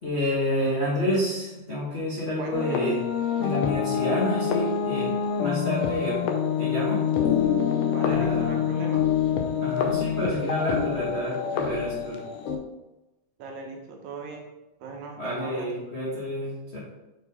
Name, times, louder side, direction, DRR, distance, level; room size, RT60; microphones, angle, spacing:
voice 1, 0.0-3.0 3.4-6.2 6.6-7.0 8.0-8.6 9.6-12.2 15.2-16.8, left 1 dB, 60° left, -8 dB, 0.6 m, -29 dB
voice 2, 2.4-2.8 7.9-9.1 13.4-14.5 14.8-15.8, right 3 dB, 75° right, 2 dB, 2.0 m, -38 dB
sound 1, 2.5-12.6, left 8 dB, 80° left, 1.4 m, -26 dB
5.5 x 4.5 x 4.1 m, 1.0 s
omnidirectional pair, 3.6 m